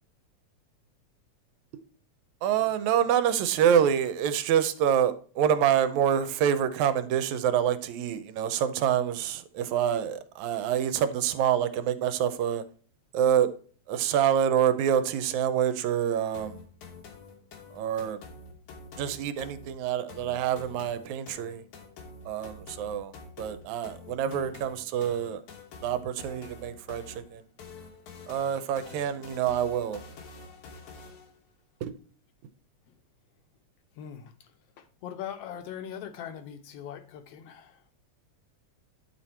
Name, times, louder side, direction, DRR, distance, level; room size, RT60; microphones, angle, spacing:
voice 1, 2.4-12.6 13.1-13.5 13.9-16.6 17.7-18.2 19.0-21.6 22.3-25.4 25.8-27.4 28.3-30.0 31.8-31.9, right 9 dB, 85° right, 2.0 m, -26 dB
sound 1, 16.3-31.4, left 3 dB, 90° left, 2.9 m, -47 dB
voice 2, 28.8-29.2 32.9-33.0 34.0-37.8, left 9 dB, 70° left, 1.7 m, -42 dB
10.0 x 4.3 x 4.5 m
omnidirectional pair, 3.3 m